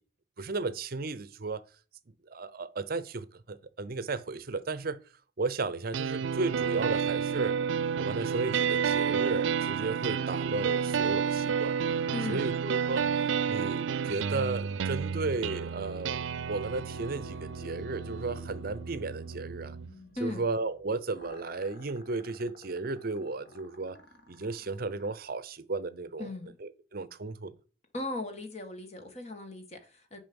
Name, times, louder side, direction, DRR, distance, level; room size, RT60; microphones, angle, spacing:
voice 1, 0.4-1.6 2.3-5.0 5.4-7.6 8.0-11.8 12.3-13.1 13.5-19.8 20.2-24.0 24.3-26.3 26.6-27.5, right 3 dB, 50° right, 0.7 m, -34 dB
sound 1, 5.9-19.9, right 7 dB, 90° right, 0.4 m, -31 dB
voice 2, 12.1-12.4 20.1-20.4 26.2-26.5 27.9-30.2, left 2 dB, 35° left, 1.6 m, -37 dB
sound 2, 15.3-16.2 16.5-20.8 21.1-25.1, left 1 dB, 60° left, 1.7 m, -53 dB
7.2 x 5.4 x 7.0 m
head